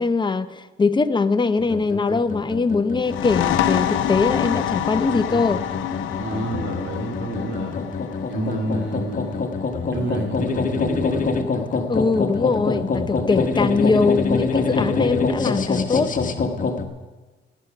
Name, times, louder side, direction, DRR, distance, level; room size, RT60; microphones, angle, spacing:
voice 1, 0.0-5.6 11.9-16.1, left 4 dB, 25° left, 12 dB, 0.7 m, -22 dB
sound 1, 1.6-16.8, left 4 dB, 40° left, 1.2 m, -26 dB
sound 2, 3.0-10.4, left 11 dB, 80° left, 0.7 m, -27 dB
voice 2, 6.2-7.8 8.3-9.4 9.9-11.2, right 2 dB, 65° right, 2 dB, 2.5 m, -29 dB
17.5 x 8.2 x 5.8 m, 1.3 s
cardioid pair, 90°, 20 cm